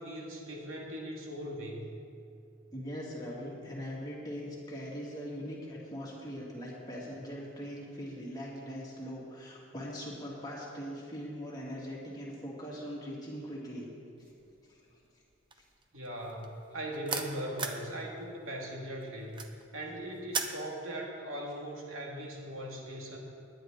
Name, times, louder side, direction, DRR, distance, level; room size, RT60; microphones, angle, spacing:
voice 1, 0.0-1.9 15.9-19.4 19.7-23.2, right 1 dB, 85° right, -1 dB, 2.2 m, -39 dB
voice 2, 2.7-13.9 14.2-14.3 14.7-14.8 15.5-15.6, equal, 20° left, -5 dB, 2.4 m, -41 dB
sound 1, 14.3-14.7 15.0-17.9 18.2-20.6, right 5 dB, 25° right, 0.6 m, -37 dB
19.0 x 10.5 x 3.9 m, 2.5 s
head